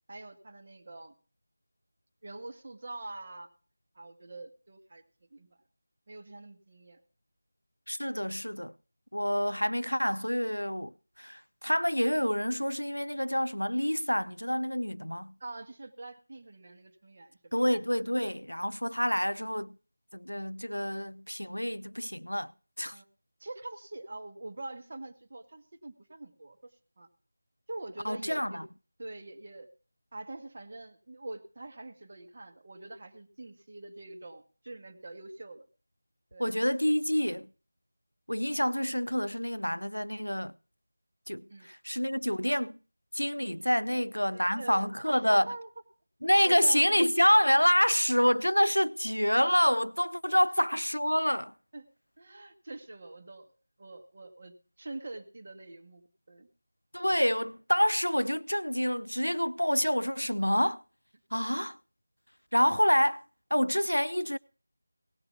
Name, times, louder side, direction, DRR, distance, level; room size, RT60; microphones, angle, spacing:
voice 1, 0.1-1.1 2.2-3.5 4.0-5.0 5.3-5.5 6.1-7.0 15.4-17.6 22.9-23.1 23.4-26.7 27.0-27.1 27.7-28.6 29.0-29.7 30.1-35.6 36.3-36.5 41.5-41.7 43.9-45.7 46.5-47.0 50.3-50.5 51.7-51.8 52.2-53.5 53.8-56.5, right 2 dB, 35° right, 1.9 m, -44 dB
voice 2, 7.9-8.7 9.1-15.3 17.5-19.8 20.1-22.5 22.8-23.0 28.0-28.6 36.4-37.5 38.3-40.5 41.3-42.8 43.1-45.5 46.2-51.5 56.9-60.8 61.3-61.8 62.5-63.2 63.5-64.4, equal, 85° left, 0.5 m, -27 dB
18.0 x 7.9 x 5.7 m
figure-of-eight pair, 165°, 0 cm